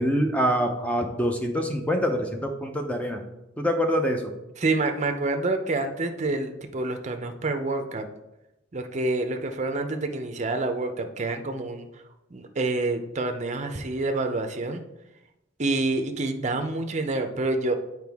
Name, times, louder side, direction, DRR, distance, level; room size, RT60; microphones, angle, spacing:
voice 1, 0.0-3.2 3.6-4.3, equal, 5° left, 3 dB, 0.6 m, -25 dB
voice 2, 4.6-8.1 8.7-11.9 12.3-14.8 15.6-17.7, right 2 dB, 35° right, 6 dB, 0.6 m, -27 dB
7.8 x 4.7 x 3.5 m, 0.94 s
head